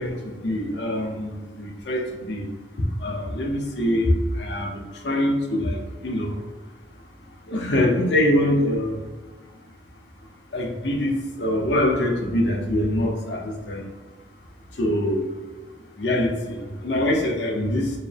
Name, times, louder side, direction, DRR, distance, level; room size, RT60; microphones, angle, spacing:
voice 1, 0.0-2.4 3.0-4.1 4.4-6.3 7.5-9.0 10.5-13.8 14.8-15.2 16.0-17.9, left 1 dB, 65° left, 0 dB, 0.7 m, -24 dB
4.6 x 2.0 x 3.3 m, 1.2 s
head